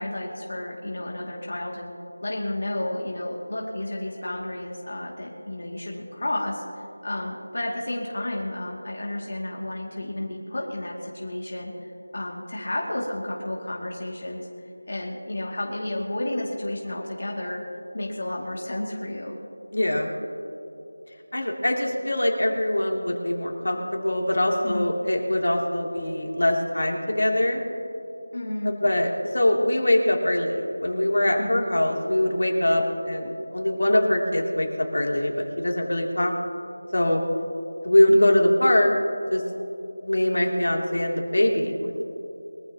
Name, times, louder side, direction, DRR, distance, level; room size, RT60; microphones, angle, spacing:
voice 1, 0.0-1.9 2.2-14.5 14.9-17.6 17.9-19.4 24.6-24.9 28.3-28.7 31.4-31.6 38.1-38.4, left 1 dB, 50° left, -2 dB, 2.3 m, -31 dB
voice 2, 19.7-20.1 21.3-27.6 28.6-36.3 36.9-37.2 37.8-38.9 39.3-39.4 40.0-42.0, left 1 dB, 80° left, 0 dB, 2.8 m, -23 dB
23.0 x 14.5 x 2.9 m, 2.9 s
figure-of-eight pair, 175°, 0 cm